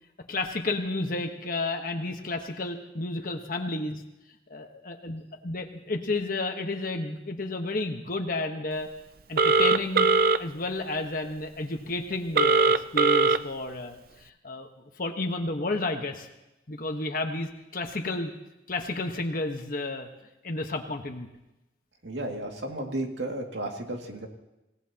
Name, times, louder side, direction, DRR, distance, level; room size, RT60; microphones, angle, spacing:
voice 1, 0.3-4.0 4.5-8.9 9.3-10.1 10.4-14.7 15.0-16.3 16.7-18.3 18.7-20.1 20.4-21.3, left 2 dB, 50° left, 3 dB, 1.3 m, -31 dB
Telephone, 9.4-10.4 12.4-13.4, right 4 dB, 55° right, 0.5 m, -20 dB
voice 2, 22.0-24.3, right 1 dB, 85° right, 1 dB, 2.3 m, -33 dB
26.5 x 17.5 x 2.9 m, 0.95 s
head